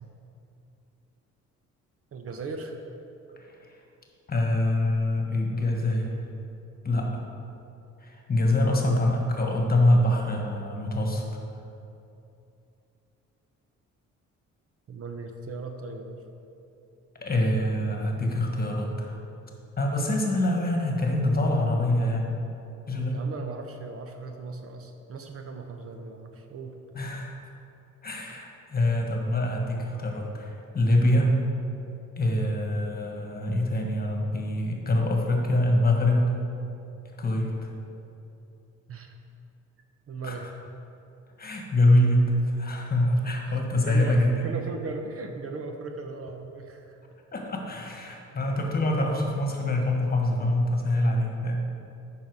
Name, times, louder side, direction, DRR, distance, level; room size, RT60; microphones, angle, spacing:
voice 1, 2.1-2.8 8.6-9.0 14.9-16.2 23.1-26.8 38.9-39.1 40.1-40.5 43.5-47.0, right 3 dB, 50° right, 4 dB, 0.8 m, -37 dB
voice 2, 3.4-3.8 4.3-6.2 6.8-7.2 8.0-11.2 17.2-19.2 19.8-22.3 22.9-23.2 26.9-27.3 28.0-31.3 32.2-36.2 37.2-37.7 40.2-40.5 41.4-44.3 47.3-51.7, left 1 dB, 30° left, 1 dB, 1.5 m, -25 dB
9.2 x 5.8 x 4.7 m, 2.8 s
cardioid pair, 90°, 30 cm